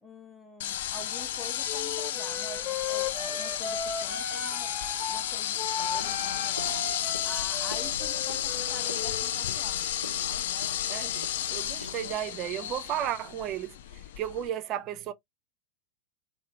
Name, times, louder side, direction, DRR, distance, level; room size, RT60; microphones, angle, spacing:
voice 1, 0.0-4.7 5.1-10.1, left 2 dB, 15° left, 0.6 m, -46 dB
sound 1, 0.6-14.5, left 11 dB, 55° left, 0.3 m, -32 dB
Wind instrument woodwind instrument, 1.7-5.2 5.6-9.3, left 5 dB, 35° left, 1.2 m, -36 dB
Walk footsteps, 5.8-12.1, left 2 dB, 85° left, 0.7 m, -43 dB
voice 2, 10.9-13.8 14.2-15.1, right 11 dB, 35° right, 0.5 m, -33 dB
2.9 x 2.6 x 2.8 m
figure-of-eight pair, 90°, 0 cm